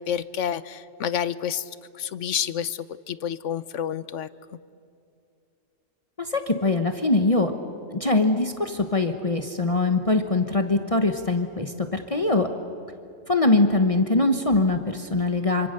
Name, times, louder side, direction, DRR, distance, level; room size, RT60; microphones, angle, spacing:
voice 1, 0.0-1.7 1.9-4.3, left 9 dB, 85° left, 15 dB, 1.1 m, -29 dB
voice 2, 6.2-7.5 7.9-12.5 13.3-15.7, left 2 dB, 30° left, 5 dB, 1.2 m, -22 dB
27.0 x 25.5 x 6.7 m, 2.5 s
omnidirectional pair, 1.2 m